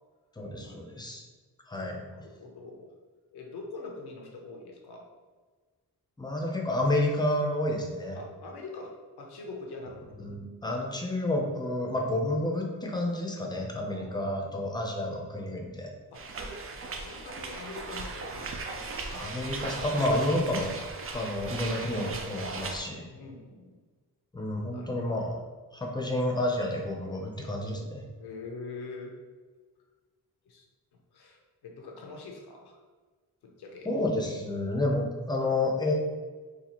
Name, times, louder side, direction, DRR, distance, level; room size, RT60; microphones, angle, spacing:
voice 1, 0.4-1.2 1.7-2.0 6.2-8.2 10.2-15.9 19.1-20.7 21.1-23.1 24.3-25.4 25.7-28.0 33.8-35.9, left 1 dB, 10° left, 0 dB, 0.6 m, -30 dB
voice 2, 2.0-2.9 3.3-5.1 8.1-8.9 9.2-10.1 13.9-14.6 16.1-16.2 16.7-18.9 23.1-23.8 24.7-25.2 28.2-29.1 30.4-30.6 31.1-32.8 33.4-33.9, left 3 dB, 85° left, 1 dB, 0.7 m, -44 dB
Laughter, 15.9-16.0 16.4-17.8 19.6-20.8, right 3 dB, 60° right, 0.8 m, -44 dB
sound 1, 16.1-22.8, right 3 dB, 35° right, 0.4 m, -38 dB
4.1 x 2.4 x 2.9 m, 1.4 s
wide cardioid pair, 100°, 38 cm